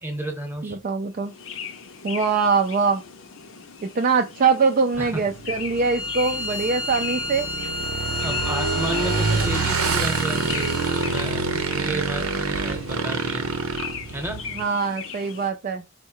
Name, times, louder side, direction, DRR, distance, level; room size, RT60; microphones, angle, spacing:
voice 1, 0.0-0.8 5.0-5.2 8.2-13.4 14.1-14.5, right 1 dB, 10° right, 0.9 m, -32 dB
voice 2, 0.6-1.3 2.0-3.0 4.0-7.5 11.8-11.9 14.6-15.8, right 5 dB, 40° right, 0.3 m, -23 dB
sound 1, 1.2-15.5, left 6 dB, 65° left, 0.6 m, -39 dB
Motorcycle / Engine, 4.9-14.6, right 4 dB, 85° right, 0.8 m, -27 dB
Bowed string instrument, 5.7-11.1, left 2 dB, 20° left, 0.6 m, -31 dB
4.5 x 2.2 x 4.5 m
head